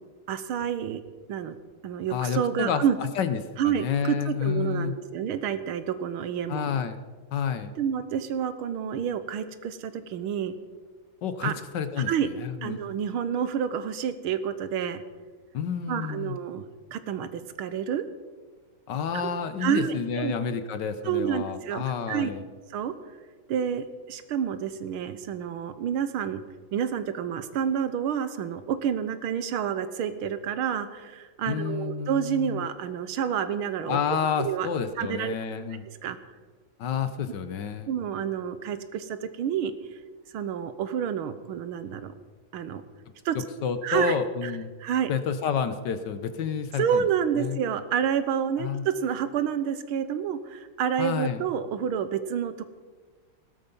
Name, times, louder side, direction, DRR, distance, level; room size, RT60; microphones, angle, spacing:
voice 1, 0.3-1.0 1.3-1.6 1.8-3.0 3.6-6.7 7.8-10.5 11.4-11.5 12.1-12.3 12.6-15.0 15.9-16.6 16.9-18.1 19.6-20.3 21.1-22.3 22.7-22.9 23.5-26.4 26.7-34.0 34.4-34.7 35.0-35.3 36.0-36.2 37.9-39.7 40.3-42.1 42.5-42.8 43.3-43.4 43.8-44.1 44.4-44.5 44.8-45.1 46.8-52.7, right 8 dB, 85° right, 12 dB, 1.8 m, -29 dB
voice 2, 2.1-4.9 6.5-7.0 7.3-7.7 11.2-12.8 15.5-16.4 18.9-22.4 31.5-32.6 33.9-35.8 36.8-37.9 43.6-44.7 45.1-47.1 47.3-47.6 48.6-48.8 51.0-51.4, left 7 dB, 65° left, 11 dB, 1.4 m, -29 dB
17.5 x 12.5 x 5.5 m, 1.4 s
omnidirectional pair, 2.3 m